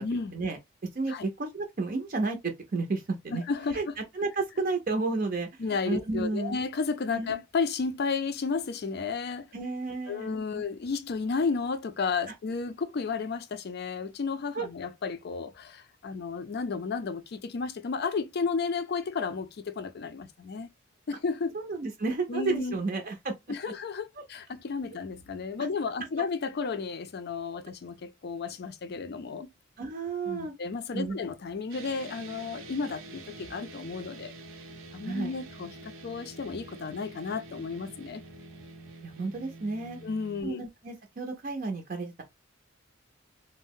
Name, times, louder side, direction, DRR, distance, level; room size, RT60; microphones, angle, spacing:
voice 1, 0.0-0.3 1.1-1.2 3.3-4.0 5.6-9.5 10.1-20.7 21.1-21.5 22.3-22.8 23.5-29.5 30.3-34.3 34.9-38.2 40.0-40.6, left 4 dB, 55° left, 0.4 m, -33 dB
voice 2, 0.9-3.4 3.7-6.6 7.2-7.4 9.5-10.6 14.5-14.7 21.5-23.3 24.2-24.3 29.8-30.5 30.9-31.2 35.0-35.3 39.0-40.0 40.4-42.2, right 3 dB, 45° right, 0.5 m, -32 dB
sound 1, 31.7-40.4, right 2 dB, 85° right, 0.7 m, -46 dB
2.6 x 2.0 x 3.5 m
head